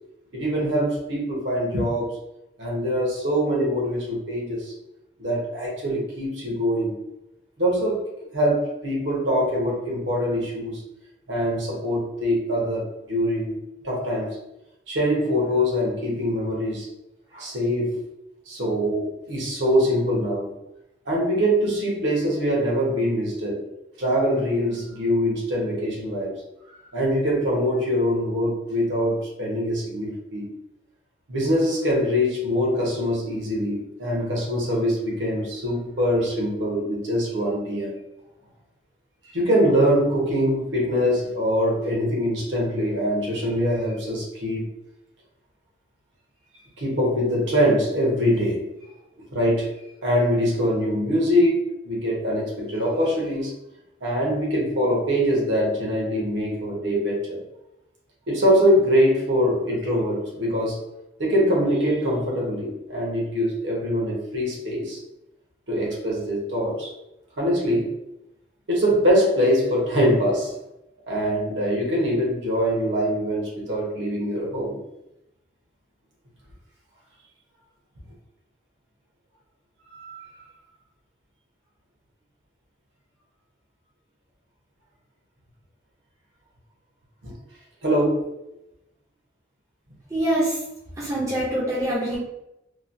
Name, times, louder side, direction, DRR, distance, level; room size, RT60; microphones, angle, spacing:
voice 1, 0.3-2.1 2.6-4.7 5.2-7.0 7.6-8.1 8.3-10.8 11.3-13.6 13.8-14.4 14.9-16.9 17.3-18.1 18.5-20.5 21.1-23.6 24.0-26.4 26.9-30.5 31.3-38.0 39.3-44.7 46.8-48.7 49.3-49.7 50.0-53.5 54.0-57.4 58.3-60.8 61.2-65.0 65.7-66.9 67.4-67.9 68.7-70.5 71.1-74.8 79.9-80.2 87.2-87.3 87.8-88.3, equal, 80° right, -3 dB, 1.0 m, -23 dB
voice 2, 90.1-90.6 91.0-92.2, right 1 dB, 15° right, -7 dB, 0.5 m, -24 dB
3.0 x 2.2 x 2.6 m, 0.88 s
head